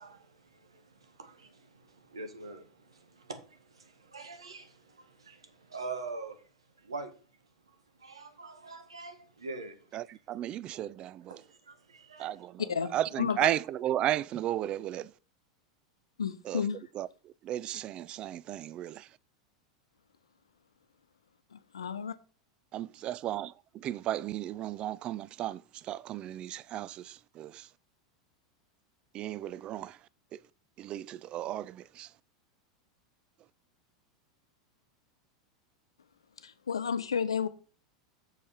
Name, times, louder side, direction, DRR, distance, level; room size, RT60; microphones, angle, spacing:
voice 1, 0.0-6.4 6.8-7.1 8.0-9.8 11.3-12.3, right 3 dB, 85° right, 1.4 m, -44 dB
voice 2, 9.9-11.4 12.2-15.1 16.4-16.6 16.9-19.2 22.7-27.7 29.1-30.4 30.8-32.1, right 12 dB, 35° right, 0.4 m, -35 dB
voice 3, 13.2-13.5 16.2-16.8 21.5-22.1 36.4-37.5, left 6 dB, 80° left, 0.7 m, -31 dB
6.8 x 5.3 x 5.1 m
figure-of-eight pair, 90°, 3 cm